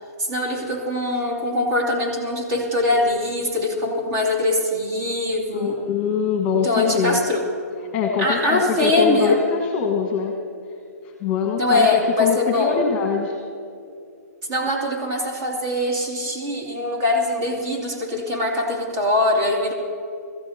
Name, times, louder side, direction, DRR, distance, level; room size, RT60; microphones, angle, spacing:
voice 1, 0.2-5.8 6.5-7.5 8.2-9.4 11.6-12.8 14.5-19.7, left 2 dB, 30° right, 1 dB, 2.7 m, -22 dB
voice 2, 5.5-7.2 7.9-10.3 11.2-11.9 12.2-13.3, left 6 dB, 25° left, 1 dB, 1.5 m, -23 dB
21.5 x 15.0 x 2.9 m, 2.4 s
hypercardioid pair, 140°, 9 cm